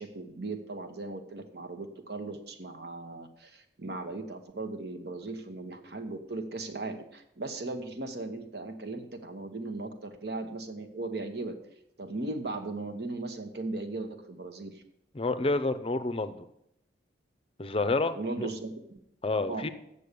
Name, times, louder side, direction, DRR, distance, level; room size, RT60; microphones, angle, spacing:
voice 1, 0.0-11.5 12.0-14.8 18.1-19.0 19.5-19.7, right 2 dB, 60° right, 7 dB, 1.1 m, -37 dB
voice 2, 15.1-16.5 17.6-18.2 19.2-19.7, left 2 dB, 30° left, 11 dB, 0.6 m, -28 dB
8.4 x 7.0 x 6.7 m, 0.80 s
head